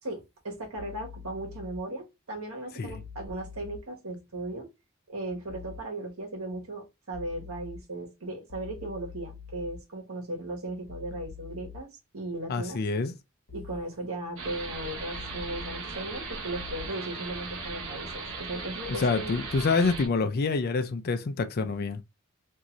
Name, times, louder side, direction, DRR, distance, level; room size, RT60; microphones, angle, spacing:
voice 1, 0.0-4.7 5.1-12.8 13.5-19.3, right 1 dB, 85° right, 1.2 m, -37 dB
sound 1, 0.8-1.8 2.9-3.8 5.5-5.8 7.1-7.8 8.5-9.8 10.9-11.8 13.5-13.8 15.1-15.8 16.5-16.9, left 6 dB, 90° left, 0.9 m, -44 dB
voice 2, 12.5-13.1 18.9-22.0, left 4 dB, 45° left, 0.4 m, -27 dB
sound 2, 14.4-20.1, right 3 dB, 65° right, 1.0 m, -38 dB
2.7 x 2.5 x 2.9 m
head